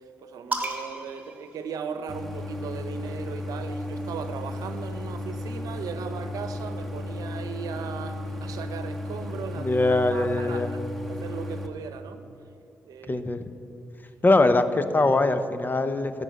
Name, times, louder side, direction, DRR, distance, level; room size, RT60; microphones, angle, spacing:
voice 1, 0.2-9.8 10.1-12.2 12.8-13.2, right 6 dB, 70° right, 9 dB, 0.8 m, -37 dB
sound 1, 0.5-2.3 3.4-5.1, right 2 dB, 20° right, 2.4 m, -37 dB
Idling, 2.1-11.7, left 1 dB, ahead, 1.8 m, -34 dB
voice 2, 9.6-10.7 13.1-13.4 14.2-16.2, left 2 dB, 30° left, 10 dB, 0.9 m, -22 dB
13.5 x 5.5 x 9.2 m, 2.6 s
hypercardioid pair, 45°, 6 cm